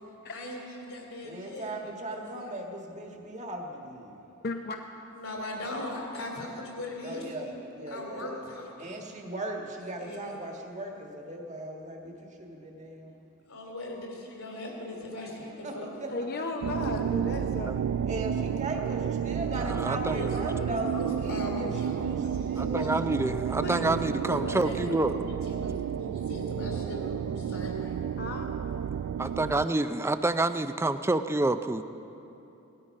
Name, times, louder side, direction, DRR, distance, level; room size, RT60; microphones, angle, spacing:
voice 1, 0.2-1.8 2.1-2.5 5.1-7.5 7.9-9.0 10.0-10.3 13.5-16.1 20.0-22.9 24.3-27.9, left 1 dB, 80° left, -1 dB, 3.5 m, -39 dB
voice 2, 1.2-4.1 5.8-6.0 7.0-8.5 8.8-13.1 15.4-16.4 18.0-20.9 21.2-23.6, right 1 dB, 35° right, 1 dB, 1.7 m, -38 dB
voice 3, 4.4-4.8 16.1-17.8 23.6-24.9 28.2-28.5, left 3 dB, 50° left, 4 dB, 0.6 m, -36 dB
sound 1, 16.6-29.7, right 8 dB, 85° right, 0.3 m, -31 dB
voice 4, 19.7-20.3 22.6-25.2 29.2-31.8, right 2 dB, 10° right, 11 dB, 0.4 m, -28 dB
18.0 x 12.5 x 5.4 m, 2.9 s
head